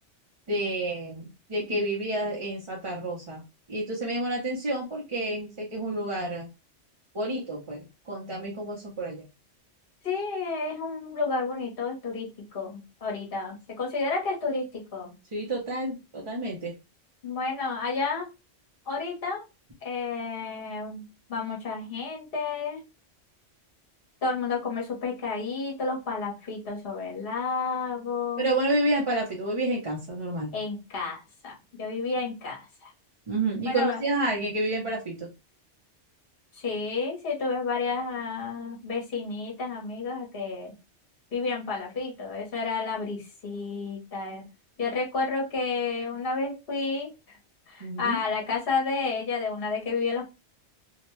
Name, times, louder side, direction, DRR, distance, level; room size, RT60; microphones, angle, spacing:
voice 1, 0.5-3.4 3.7-6.5 7.1-9.2 15.3-16.7 28.4-30.5 33.3-35.3 47.8-48.2, right 1 dB, 30° right, -4 dB, 0.6 m, -29 dB
voice 2, 10.0-15.2 17.2-18.3 18.9-19.4 19.8-21.0 21.3-22.8 24.2-28.5 30.5-32.9 33.6-34.0 36.5-40.7 41.3-44.4 44.8-47.4 47.7-50.3, left 4 dB, 55° left, -2 dB, 1.3 m, -31 dB
2.8 x 2.2 x 3.0 m, 0.27 s
omnidirectional pair, 1.2 m